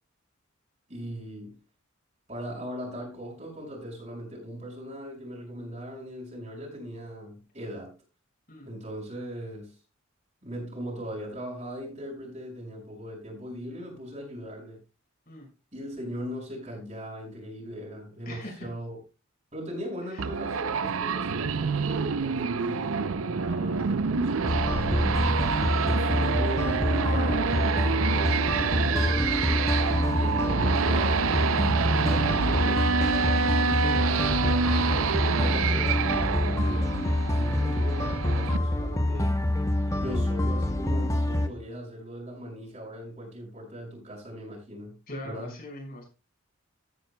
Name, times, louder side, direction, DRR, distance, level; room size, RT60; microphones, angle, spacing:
voice 1, 0.9-1.6 2.3-7.9 8.6-9.8 10.4-14.8 15.7-19.0 19.5-25.3 25.8-28.2 28.8-34.8 35.3-36.9 37.3-39.3 39.9-45.0 45.2-45.5, equal, 35° right, 5.1 m, -39 dB
voice 2, 18.3-18.7 20.1-20.2 20.5-20.6 23.5-23.7 45.1-46.0, left 1 dB, 45° left, 5.6 m, -41 dB
sound 1, 20.2-38.6, right 5 dB, 80° right, 0.5 m, -27 dB
sound 2, 24.5-41.5, left 1 dB, 15° left, 0.9 m, -26 dB
15.5 x 9.6 x 2.2 m
head